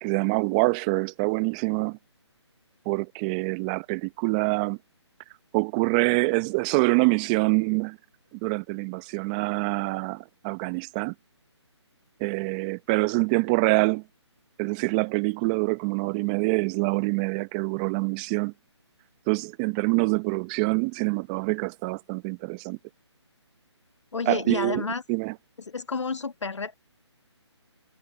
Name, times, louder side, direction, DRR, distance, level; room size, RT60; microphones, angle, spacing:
voice 1, 0.0-2.0 2.9-4.8 5.5-8.0 8.4-11.1 12.2-14.0 14.6-18.5 19.3-22.8 24.3-24.8 25.1-25.3, right 28 dB, 15° right, 0.8 m, -25 dB
voice 2, 24.1-25.0 25.7-26.7, left 4 dB, 80° left, 1.6 m, -30 dB
figure-of-eight pair, 155°, 15 cm